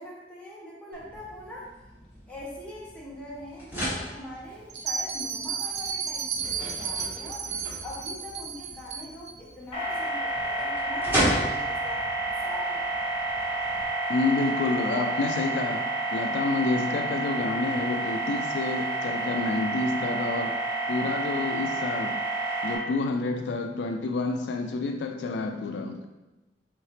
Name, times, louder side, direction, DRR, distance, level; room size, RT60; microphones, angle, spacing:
voice 1, 0.0-1.7 2.3-7.5 7.8-12.9, left 1 dB, 5° left, -7 dB, 1.2 m, -42 dB
sound 1, 0.9-13.8, equal, 10° right, 1.5 m, -36 dB
Bell, 4.7-9.3, right 6 dB, 40° right, 0.4 m, -33 dB
sound 2, 9.7-22.8, right 2 dB, 30° left, 1.1 m, -30 dB
voice 2, 14.1-20.6 20.9-22.2 22.6-26.1, left 3 dB, 75° left, 5 dB, 0.3 m, -29 dB
4.2 x 3.9 x 3.2 m, 1.1 s
head